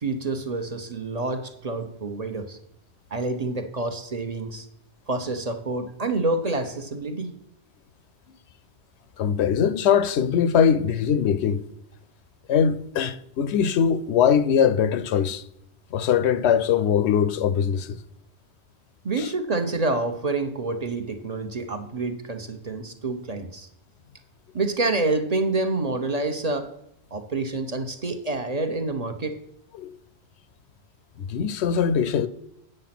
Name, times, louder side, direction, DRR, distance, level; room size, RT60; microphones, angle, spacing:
voice 1, 0.0-2.6 3.1-4.7 5.1-7.3 19.0-23.7 24.5-26.7 27.1-29.4, right 3 dB, 40° right, 0.9 m, -27 dB
voice 2, 9.2-11.6 12.5-15.4 15.9-18.0 19.2-19.3 29.8-30.0 31.2-32.3, left 7 dB, 80° left, 0.9 m, -21 dB
9.0 x 6.4 x 5.9 m
omnidirectional pair, 1.1 m